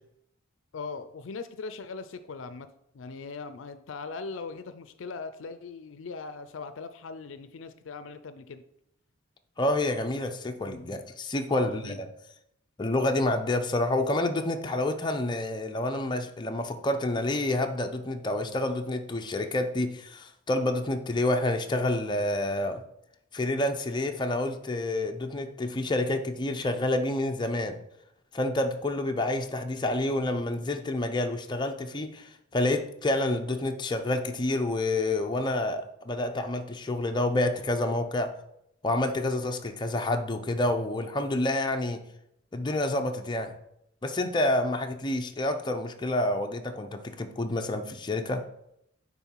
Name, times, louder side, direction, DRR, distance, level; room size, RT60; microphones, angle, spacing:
voice 1, 0.7-8.6 11.5-12.0, left 4 dB, 70° left, 11 dB, 0.4 m, -40 dB
voice 2, 9.6-12.1 12.8-22.8 23.3-27.8 28.3-38.3 38.8-42.0 42.5-43.5 44.0-48.4, left 1 dB, 25° left, 4 dB, 0.6 m, -28 dB
9.5 x 3.7 x 4.5 m, 0.77 s
head